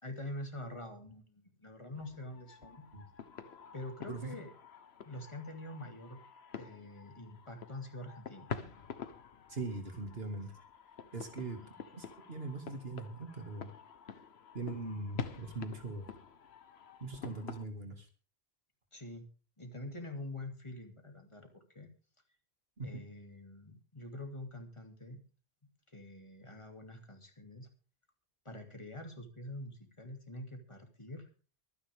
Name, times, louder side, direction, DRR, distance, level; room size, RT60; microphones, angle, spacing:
voice 1, 0.0-2.8 3.7-4.5 5.0-6.2 6.5-8.5 11.4-11.7 18.9-19.2 19.6-21.9 22.8-25.2 25.9-27.7 28.4-31.3, left 1 dB, 30° left, 4 dB, 2.7 m, -46 dB
sound 1, 1.9-17.6, left 6 dB, 75° left, 1.3 m, -48 dB
voice 2, 9.5-10.5 11.1-11.6 11.9-13.7 14.5-16.1 17.0-18.1 22.8-23.0, right 3 dB, 65° right, 5 dB, 2.5 m, -41 dB
23.5 x 10.0 x 3.6 m, 0.37 s
omnidirectional pair, 1.1 m